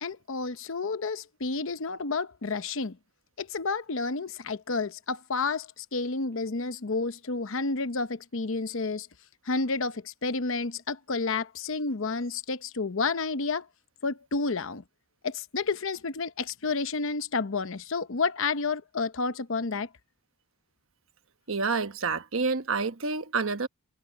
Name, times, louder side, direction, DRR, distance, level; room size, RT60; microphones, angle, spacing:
voice 1, 0.0-3.0 3.4-9.1 9.4-13.7 14.0-14.8 15.2-19.9, left 4 dB, 60° left, 0.8 m, -30 dB
voice 2, 21.5-23.7, right 4 dB, 65° right, 1.2 m, -28 dB
head